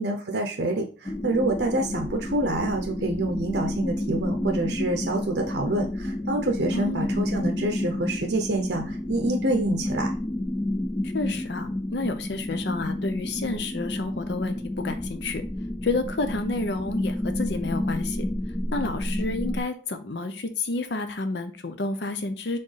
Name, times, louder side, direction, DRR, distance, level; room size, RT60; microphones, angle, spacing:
voice 1, 0.0-10.1, right 2 dB, 70° right, 2 dB, 0.7 m, -27 dB
sound 1, 1.0-19.6, left 1 dB, 15° left, 0.3 m, -30 dB
voice 2, 6.7-7.1 11.1-15.4 15.8-18.3 18.7-22.6, left 3 dB, 70° left, 9 dB, 0.7 m, -30 dB
4.4 x 3.7 x 3.3 m, 0.37 s
head